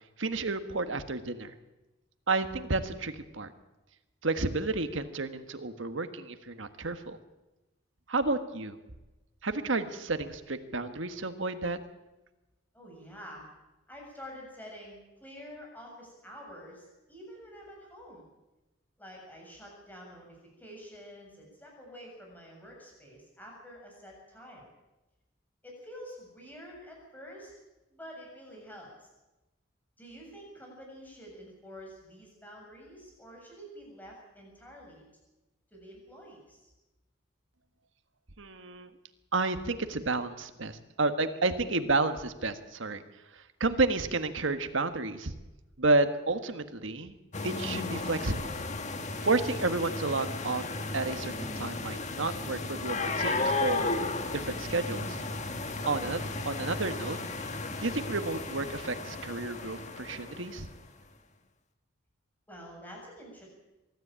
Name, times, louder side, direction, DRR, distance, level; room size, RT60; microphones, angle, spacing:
voice 1, 0.2-1.5 2.3-3.5 4.2-7.2 8.1-8.8 9.4-11.8 38.4-38.9 39.3-43.0 43.3-45.3 45.8-47.1 47.4-48.5 49.2-50.6 50.9-53.9 54.3-55.2 55.8-57.2 57.8-60.7, right 3 dB, 70° right, 9 dB, 1.5 m, -31 dB
voice 2, 12.7-13.5 13.9-18.3 19.0-24.7 25.6-27.5 27.9-29.1 30.0-35.0 35.7-36.6 62.5-63.5, equal, 10° left, -1 dB, 7.1 m, -48 dB
sound 1, 47.3-60.8, left 3 dB, 35° left, 1.6 m, -34 dB
23.0 x 13.0 x 8.8 m, 1.0 s
head